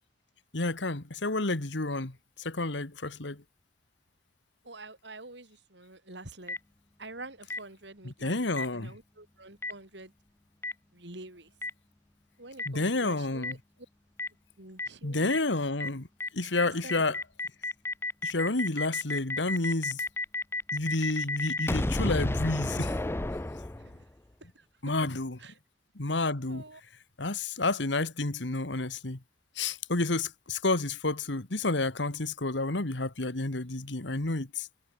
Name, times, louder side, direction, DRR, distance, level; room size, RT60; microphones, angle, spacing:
voice 1, 0.5-3.4 8.0-8.9 12.7-13.6 15.0-16.1 16.3-17.2 18.2-20.0 20.7-23.0 24.8-25.4 26.0-26.6 27.2-29.2 29.6-34.7, left 2 dB, 80° left, 1.9 m, -30 dB
voice 2, 4.6-6.6 7.0-10.1 10.9-11.5 12.4-13.6 14.6-15.4 16.8-17.1 23.8-24.0 24.5-24.6 25.4-25.5 26.5-26.8, right 2 dB, 70° right, 7.8 m, -47 dB
Boom, 6.5-6.6 7.5-7.6 8.6-8.7 9.6-9.7 10.6-10.7 11.6-11.7 12.6-12.7 13.4-13.5 14.2-14.3 14.8-14.9 15.3-15.4 15.8-15.9 16.2-16.3 16.6-24.1, left 2 dB, 15° left, 0.4 m, -31 dB
head